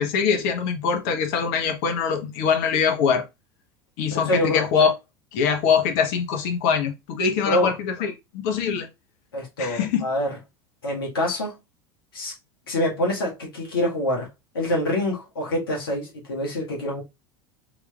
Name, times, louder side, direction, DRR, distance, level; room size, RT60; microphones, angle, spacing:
voice 1, 0.0-3.2 4.0-4.9 5.3-8.9 9.6-10.0, left 6 dB, 60° left, 1.1 m, -23 dB
voice 2, 4.3-4.6 7.4-7.7 9.3-10.4 10.8-11.6 12.1-12.3 12.7-14.3 14.5-17.0, left 1 dB, 85° left, 1.7 m, -25 dB
3.8 x 3.1 x 2.4 m
hypercardioid pair, 85°, 12 cm